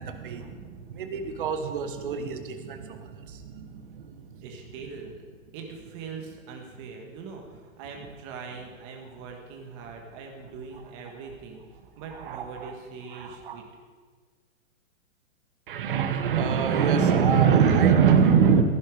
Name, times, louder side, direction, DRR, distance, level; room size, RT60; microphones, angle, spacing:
voice 1, 0.0-4.4 12.2-12.7 13.1-13.6 15.7-18.6, right 7 dB, 40° right, 7 dB, 1.2 m, -24 dB
voice 2, 4.4-5.2 5.5-11.6 12.0-13.7, right 5 dB, 20° right, 2 dB, 1.4 m, -42 dB
15.0 x 10.5 x 4.7 m, 1.5 s
hypercardioid pair, 170°, 41 cm